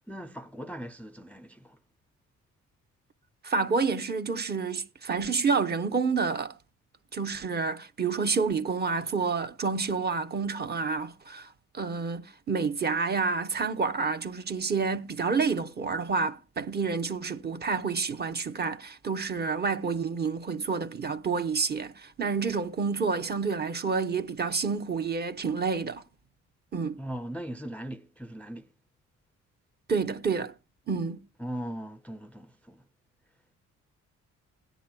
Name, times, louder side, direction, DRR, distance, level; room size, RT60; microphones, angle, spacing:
voice 1, 0.1-1.8 27.0-28.7 31.4-32.9, equal, 5° left, 0.4 m, -39 dB
voice 2, 3.4-6.5 7.1-26.0 26.7-27.0 29.9-30.5 30.9-31.2, right 4 dB, 35° right, 0.8 m, -29 dB
17.0 x 10.0 x 2.3 m
cardioid pair, 90°, 30 cm